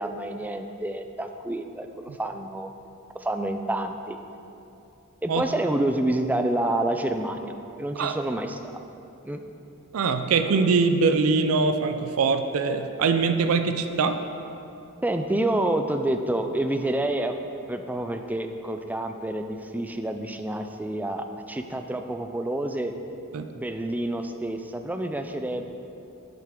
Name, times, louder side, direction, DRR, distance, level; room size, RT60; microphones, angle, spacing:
voice 1, 0.0-2.7 3.1-4.2 5.2-7.5 7.8-8.6 9.3-9.4 15.0-17.3 17.7-22.9 23.5-25.6, right 1 dB, 10° right, 6 dB, 0.3 m, -28 dB
voice 2, 9.9-14.2 23.3-23.5, right 4 dB, 80° right, 8 dB, 0.4 m, -23 dB
7.5 x 7.5 x 3.7 m, 2.8 s
head